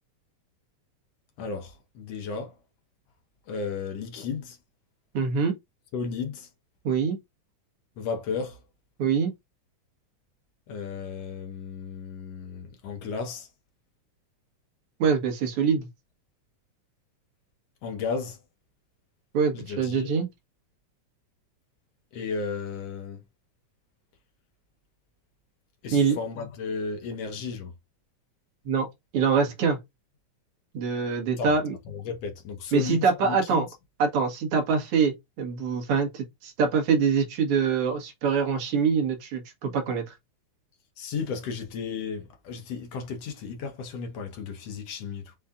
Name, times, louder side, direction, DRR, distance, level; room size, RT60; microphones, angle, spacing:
voice 1, 1.4-2.6 3.5-4.6 5.9-6.5 8.0-8.6 10.7-13.5 17.8-18.4 19.5-20.1 22.1-23.2 25.8-27.7 31.4-31.5 31.9-33.7 41.0-45.4, left 5 dB, 65° left, 1.8 m, -34 dB
voice 2, 5.1-5.5 6.8-7.2 9.0-9.3 15.0-15.9 19.3-20.3 25.9-26.2 28.7-28.9 29.1-29.8 30.7-31.7 32.7-33.7 34.0-40.0, right 5 dB, 55° right, 1.9 m, -24 dB
5.5 x 2.4 x 3.6 m
omnidirectional pair, 3.5 m